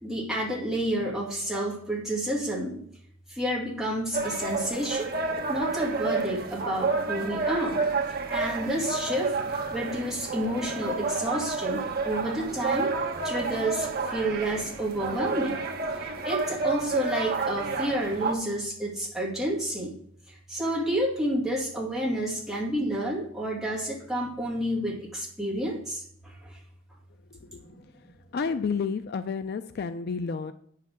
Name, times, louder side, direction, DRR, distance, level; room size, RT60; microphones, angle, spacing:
voice 1, 0.0-2.8 3.3-5.2 5.5-7.9 8.3-9.3 9.7-12.9 13.2-15.6 15.9-19.9 20.3-26.6 27.5-27.6, right 1 dB, ahead, -4 dB, 2.1 m, -30 dB
sound 1, 4.1-18.3, right 3 dB, 50° right, 1.1 m, -30 dB
voice 2, 28.3-30.5, left 5 dB, 50° left, 11 dB, 0.3 m, -30 dB
8.3 x 5.7 x 6.3 m, 0.67 s
head